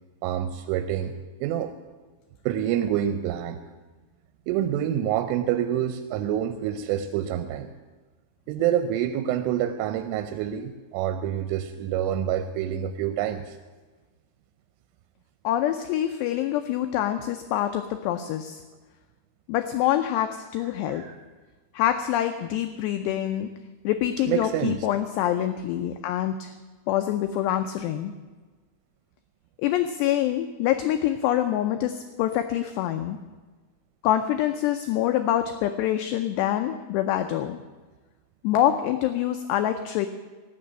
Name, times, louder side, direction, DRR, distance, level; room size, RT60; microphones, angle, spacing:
voice 1, 0.2-1.1 1.4-1.7 2.5-3.6 4.5-7.7 8.5-13.6 20.9-21.2 24.3-24.8, right 10 dB, 85° right, 9 dB, 3.1 m, -27 dB
voice 2, 15.4-18.6 19.5-21.0 21.7-23.5 23.8-26.5 26.9-28.1 29.6-33.2 34.0-37.6 38.4-40.1, left 12 dB, 90° left, 7 dB, 2.4 m, -25 dB
18.5 x 6.7 x 8.8 m, 1.3 s
omnidirectional pair, 5.6 m